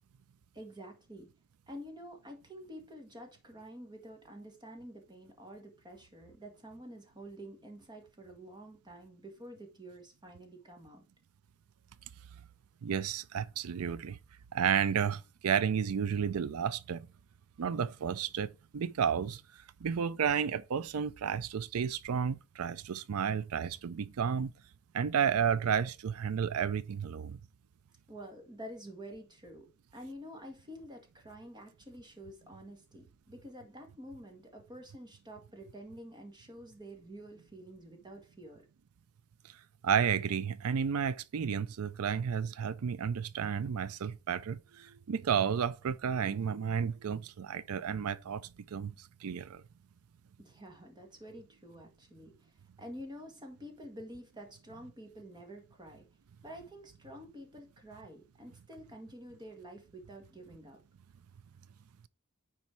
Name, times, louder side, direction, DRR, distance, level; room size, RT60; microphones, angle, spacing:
voice 1, 0.5-1.3 1.7-11.1 28.1-38.7 50.4-56.0 56.4-60.8, equal, 20° right, 1.8 m, -49 dB
voice 2, 12.8-14.2 14.5-17.1 17.6-19.4 19.8-24.5 24.9-27.4 39.8-49.6, right 7 dB, 75° right, 0.4 m, -32 dB
9.6 x 4.3 x 4.5 m
head